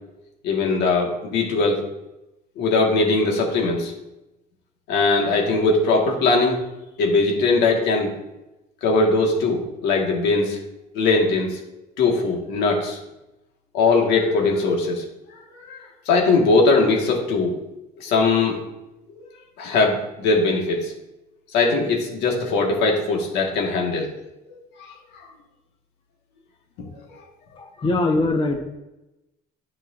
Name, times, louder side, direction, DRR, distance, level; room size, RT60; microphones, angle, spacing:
voice 1, 0.4-1.8 2.6-3.9 4.9-6.6 7.0-8.1 8.8-10.6 10.9-11.6 12.0-13.0 13.7-15.0 15.5-17.5 18.0-18.6 19.2-19.3 19.6-20.9 21.5-24.1 24.5-24.9, left 3 dB, 85° left, 0 dB, 1.7 m, -20 dB
voice 2, 27.6-28.6, left 2 dB, 30° left, 2 dB, 1.1 m, -22 dB
10.0 x 6.0 x 2.6 m, 0.94 s
cardioid pair, 110°, 17 cm